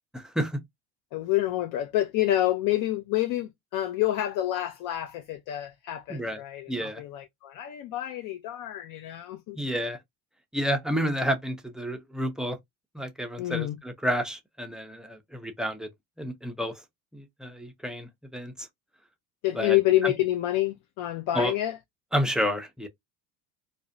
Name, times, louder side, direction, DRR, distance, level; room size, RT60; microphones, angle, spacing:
voice 1, 0.1-0.6 6.1-6.4 6.7-7.0 9.6-10.0 10.5-12.6 12.9-15.9 16.2-16.8 17.1-18.7 19.5-20.1 21.3-21.5 22.1-22.9, equal, ahead, 0.4 m, -30 dB
voice 2, 1.1-9.6 13.4-13.8 19.4-21.8, left 14 dB, 55° left, 0.5 m, -28 dB
2.5 x 2.1 x 2.4 m
supercardioid pair, 105°, 38 cm